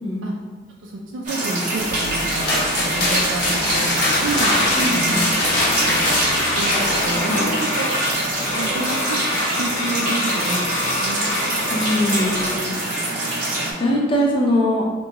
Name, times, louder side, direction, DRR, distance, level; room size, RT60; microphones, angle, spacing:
voice 1, 0.8-4.5 4.9-5.5 5.8-7.9 8.6-9.2 9.5-11.2, right 2 dB, 80° right, -2 dB, 0.4 m, -29 dB
sound 1, 1.2-13.7, right 1 dB, 40° right, 0.7 m, -25 dB
sound 2, 1.9-7.2, left 1 dB, 55° left, 0.8 m, -23 dB
sound 3, 4.3-12.5, left 1 dB, 90° left, 0.7 m, -26 dB
voice 2, 4.7-5.3 7.3-7.4 11.7-12.7 13.8-14.8, left 1 dB, 25° left, -3 dB, 0.6 m, -21 dB
3.5 x 2.2 x 2.9 m, 1.4 s
head